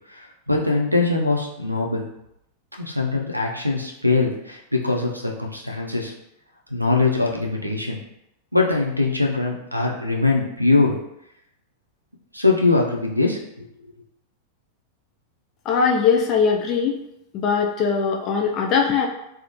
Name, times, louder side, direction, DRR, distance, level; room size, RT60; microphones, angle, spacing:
voice 1, 0.1-2.0 2.8-6.1 6.7-8.0 8.5-11.0 12.3-13.7, left 3 dB, 90° right, 1 dB, 0.4 m, -22 dB
voice 2, 15.7-17.0 17.3-19.1, left 6 dB, 35° left, 0 dB, 0.3 m, -20 dB
2.7 x 2.0 x 2.7 m, 0.82 s
figure-of-eight pair, 90°, 0 cm